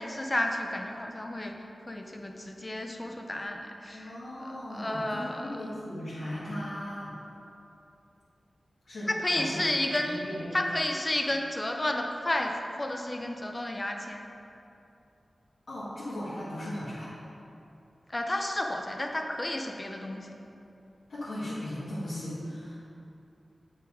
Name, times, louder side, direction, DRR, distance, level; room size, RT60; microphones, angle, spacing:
voice 1, 0.0-1.6 1.9-4.1 4.7-5.6 9.1-10.2 10.5-14.2 18.1-20.3, left 1 dB, 25° left, 3 dB, 0.6 m, -31 dB
voice 2, 3.9-7.1 8.9-9.6 9.9-10.6 15.7-17.1 21.1-22.8, left 1 dB, 75° left, -11 dB, 1.7 m, -37 dB
8.3 x 4.6 x 5.0 m, 2.8 s
wide cardioid pair, 110°, 0 cm